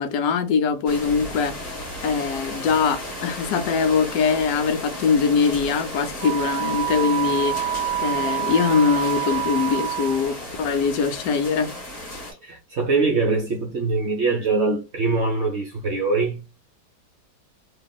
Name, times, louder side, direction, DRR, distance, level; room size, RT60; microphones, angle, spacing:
voice 1, 0.0-1.8 2.0-11.7, left 5 dB, 70° left, 0.9 m, -22 dB
sound 1, 0.9-12.3, left 1 dB, 20° left, 1.5 m, -34 dB
Wind instrument woodwind instrument, 6.2-10.4, right 11 dB, 75° right, 1.3 m, -27 dB
voice 2, 12.4-16.5, right 3 dB, 50° right, 0.8 m, -23 dB
3.3 x 2.4 x 2.3 m
omnidirectional pair, 1.9 m